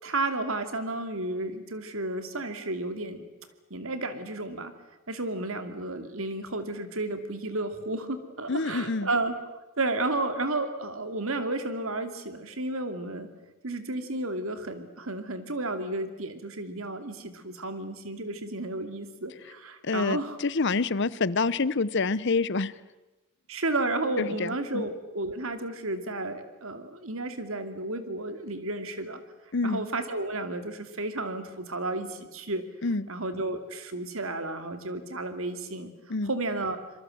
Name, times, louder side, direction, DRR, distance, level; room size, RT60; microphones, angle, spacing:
voice 1, 0.0-3.2 3.7-4.7 5.1-9.3 9.8-13.3 13.6-20.4 23.5-29.2 29.6-32.6 33.1-35.9 36.3-36.8, right 2 dB, 70° right, 9 dB, 2.5 m, -32 dB
voice 2, 8.5-9.1 19.8-22.7 24.2-24.8 29.5-29.8 32.8-33.1 36.1-36.3, left 3 dB, 55° left, 19 dB, 0.8 m, -27 dB
26.0 x 23.0 x 7.8 m, 1.1 s
head